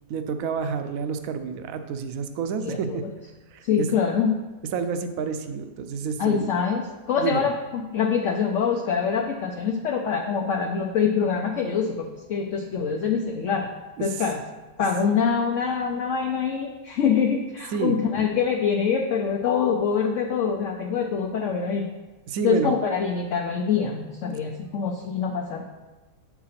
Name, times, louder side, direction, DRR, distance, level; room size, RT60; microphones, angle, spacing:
voice 1, 0.1-3.0 3.5-3.9 4.7-6.5 7.2-7.4 14.0-14.2 17.7-18.0 22.3-22.7, right 6 dB, 65° right, 8 dB, 1.0 m, -29 dB
voice 2, 2.6-3.1 3.6-4.4 6.2-6.8 7.1-13.7 14.0-14.4 14.8-21.9 22.4-25.6, left 6 dB, 60° left, 2 dB, 0.9 m, -25 dB
7.5 x 4.8 x 5.8 m, 1.2 s
omnidirectional pair, 1.7 m